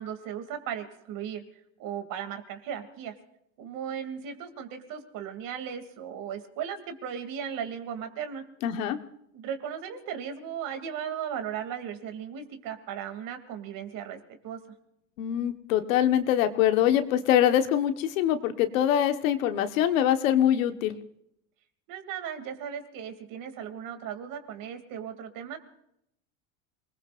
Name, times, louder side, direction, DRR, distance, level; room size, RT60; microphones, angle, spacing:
voice 1, 0.0-1.4 1.8-3.1 3.6-8.4 9.3-14.6 21.9-25.6, right 8 dB, 55° right, 6 dB, 2.8 m, -36 dB
voice 2, 8.6-9.0 15.2-21.0, left 11 dB, 85° left, 8 dB, 1.5 m, -24 dB
27.0 x 20.5 x 2.6 m, 0.77 s
supercardioid pair, 125°, 39 cm